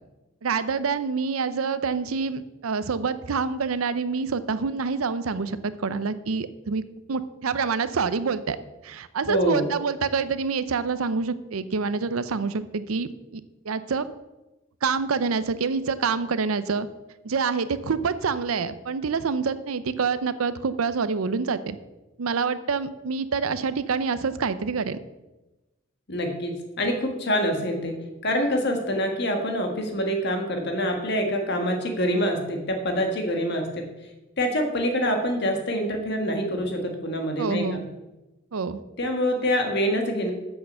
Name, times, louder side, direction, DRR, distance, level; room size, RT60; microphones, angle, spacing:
voice 1, 0.4-6.8 7.1-8.6 8.8-14.1 14.8-16.9 17.2-21.8 22.2-25.0 37.4-37.8 38.5-38.8, right 5 dB, 90° right, 14 dB, 0.6 m, -27 dB
voice 2, 9.3-9.6 26.1-33.8 34.4-37.8 39.0-40.3, equal, 55° left, 3 dB, 1.6 m, -26 dB
7.9 x 6.6 x 6.7 m, 1.1 s
head